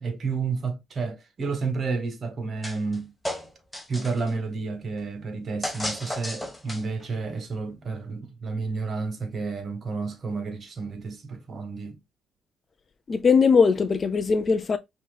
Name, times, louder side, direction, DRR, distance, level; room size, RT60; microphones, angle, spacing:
voice 1, 0.0-3.1 3.9-12.0, right 4 dB, 50° right, 1.6 m, -31 dB
sound 1, 2.6-3.0 3.2-4.3 5.6-7.0, left 1 dB, 5° left, 1.3 m, -33 dB
voice 2, 13.1-14.8, left 5 dB, 40° left, 0.4 m, -20 dB
5.7 x 3.0 x 2.4 m
cardioid pair, 90°, 0 cm